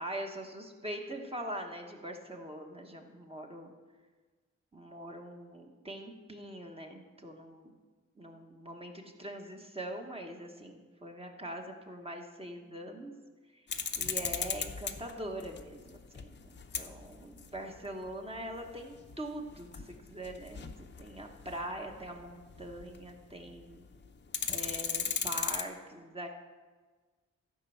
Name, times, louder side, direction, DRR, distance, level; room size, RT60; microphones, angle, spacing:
voice 1, 0.0-3.7 4.7-7.7 8.1-13.1 13.5-13.7 14.0-16.5 16.8-23.8 24.5-26.3, right 1 dB, 20° right, 2 dB, 1.2 m, -43 dB
sound 1, 13.7-23.2 23.5-23.6 23.9-25.6, left 6 dB, 40° left, 0.7 m, -37 dB
13.5 x 5.3 x 7.1 m, 1.4 s
wide cardioid pair, 130°, 29 cm